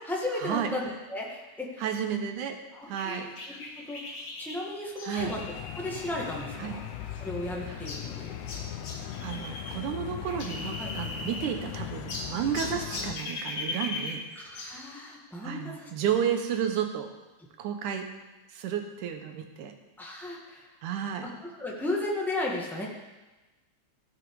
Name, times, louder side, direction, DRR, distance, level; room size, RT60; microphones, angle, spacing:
voice 1, 0.0-1.8 2.7-3.3 3.8-4.0 4.4-5.4 5.7-6.8 7.2-8.3 10.8-10.9 14.3-15.9 20.0-20.7 21.2-22.9, left 2 dB, ahead, -3 dB, 0.6 m, -34 dB
voice 2, 1.8-2.6 2.9-3.3 5.0-5.3 6.6-6.8 7.7-7.8 9.2-14.2 15.4-17.1 17.6-18.1 18.5-19.7 20.8-21.3, right 8 dB, 80° right, 5 dB, 2.5 m, -32 dB
sound 1, 3.0-9.8 10.0-11.7 12.1-14.8, left 2 dB, 40° left, 1.4 m, -39 dB
sound 2, 5.2-13.2, left 10 dB, 75° left, 2.0 m, -39 dB
15.0 x 7.5 x 4.8 m, 1.1 s
omnidirectional pair, 3.5 m